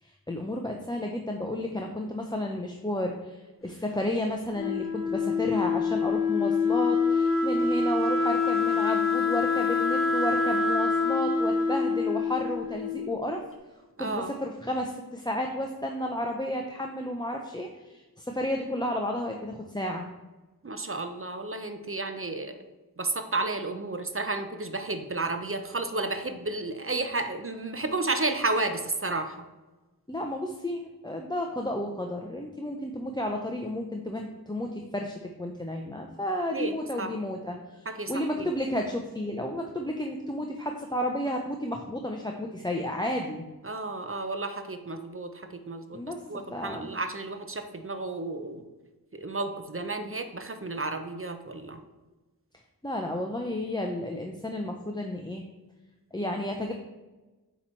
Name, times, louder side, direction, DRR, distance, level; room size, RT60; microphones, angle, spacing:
voice 1, 0.0-13.4 14.0-20.1 30.1-43.4 45.9-46.2 46.5-46.9 52.8-55.5 56.1-56.7, left 1 dB, 10° left, 1 dB, 0.5 m, -32 dB
Wind instrument woodwind instrument, 4.5-13.3, left 4 dB, 35° left, 0.8 m, -26 dB
voice 2, 14.0-14.3 20.6-22.6 23.0-29.4 36.5-36.7 37.0-37.1 38.0-38.1 38.4-38.5 43.6-48.6 49.1-51.8, right 2 dB, 35° right, 7 dB, 0.6 m, -32 dB
7.9 x 3.1 x 4.4 m, 1.2 s
wide cardioid pair, 40°, 38 cm